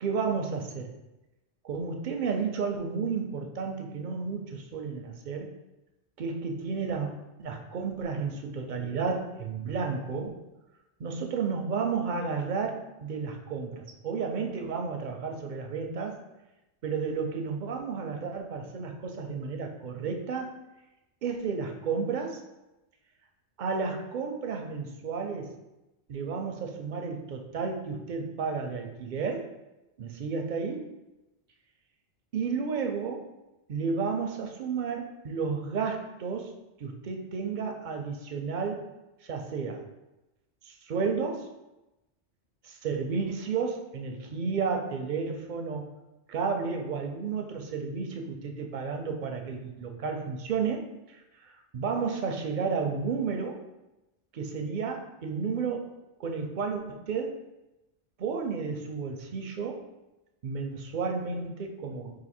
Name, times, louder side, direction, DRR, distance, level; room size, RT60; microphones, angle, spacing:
voice 1, 0.0-0.9 1.6-5.5 6.2-10.4 11.0-16.2 16.8-20.6 21.2-22.4 23.6-25.5 26.1-29.5 30.0-30.9 32.3-33.3 33.7-38.9 39.2-39.9 40.6-41.5 42.6-45.9 46.3-51.2 51.7-53.6 54.3-55.9 56.2-57.4 58.2-59.8 60.4-62.1, right 5 dB, 55° right, 3 dB, 0.5 m, -32 dB
3.8 x 2.6 x 4.2 m, 0.98 s
omnidirectional pair, 1.2 m